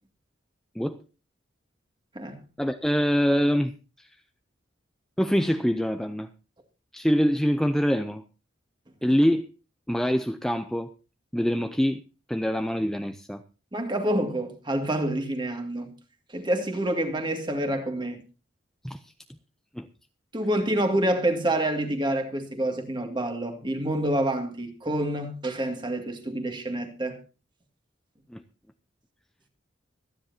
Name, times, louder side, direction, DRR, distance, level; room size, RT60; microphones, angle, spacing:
voice 1, 2.6-3.7 4.0-4.1 5.2-6.3 6.9-8.2 9.0-9.5 9.9-10.9 11.3-12.0 12.3-13.4 18.8-19.0 19.8-19.9 28.3-28.4, equal, 5° left, 0.5 m, -24 dB
voice 2, 13.7-15.9 16.3-18.2 20.3-27.2, right 1 dB, 25° right, 2.1 m, -27 dB
25.0 x 10.0 x 2.7 m
head